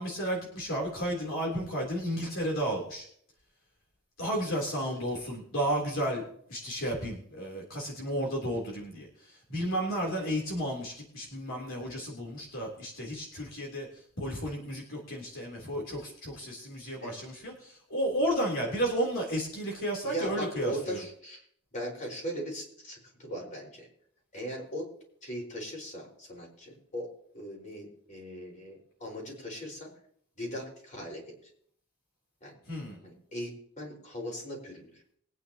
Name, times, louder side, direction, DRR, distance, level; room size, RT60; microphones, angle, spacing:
voice 1, 0.0-3.1 4.2-6.2 6.5-13.9 14.2-21.0 32.7-33.0, equal, 65° left, -1 dB, 3.4 m, -33 dB
voice 2, 20.0-21.4 21.7-23.9 24.3-24.9 25.2-27.1 27.3-29.9 30.4-31.2 32.4-32.5 33.0-33.5 33.8-34.9, equal, 35° left, 0 dB, 4.8 m, -39 dB
22.5 x 9.6 x 2.9 m, 0.63 s
head